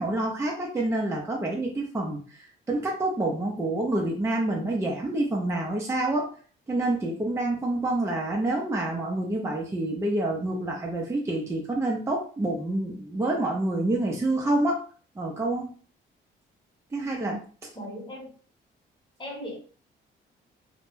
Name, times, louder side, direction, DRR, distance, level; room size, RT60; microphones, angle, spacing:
voice 1, 0.0-6.3 6.7-14.8 15.2-15.7 16.9-17.4, right 2 dB, 15° right, -1 dB, 0.5 m, -27 dB
voice 2, 17.7-18.3 19.2-19.5, equal, 25° left, 0 dB, 0.9 m, -37 dB
2.1 x 2.1 x 3.1 m, 0.41 s
cardioid pair, 90°, 20 cm